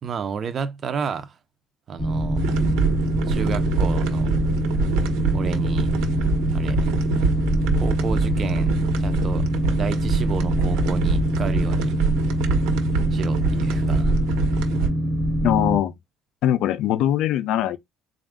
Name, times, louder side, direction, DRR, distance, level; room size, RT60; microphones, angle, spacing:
voice 1, 0.0-1.4 1.9-2.4 3.3-4.3 5.3-6.0 6.5-6.9 7.8-8.7 9.0-9.5 9.8-12.0 13.1-14.2, right 6 dB, 30° right, 0.5 m, -31 dB
Boat Water vehicle, 2.0-15.8, equal, 5° right, 0.8 m, -24 dB
sound 1, 2.4-14.9, right 5 dB, 90° right, 1.0 m, -26 dB
voice 2, 15.4-15.9 16.4-17.8, left 12 dB, 60° left, 0.5 m, -21 dB
4.0 x 2.4 x 3.5 m
cardioid pair, 170°, 0 cm